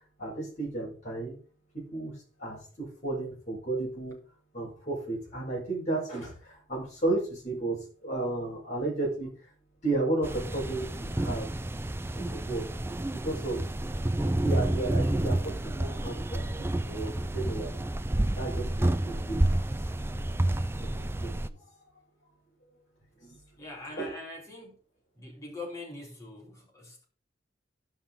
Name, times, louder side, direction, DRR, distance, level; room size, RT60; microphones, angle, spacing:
voice 1, 0.2-1.4 1.7-4.2 4.5-9.3 9.8-11.5 12.1-12.7 13.1-13.6 14.2-17.8 18.3-19.4 20.8-21.6 23.2-23.4 24.0-24.1, right 2 dB, 40° left, 6.1 m, -33 dB
sound 1, 10.2-21.5, right 1 dB, 10° right, 0.4 m, -30 dB
voice 2, 23.6-24.8 25.2-27.0, left 2 dB, 15° left, 4.0 m, -43 dB
13.0 x 5.9 x 4.2 m
head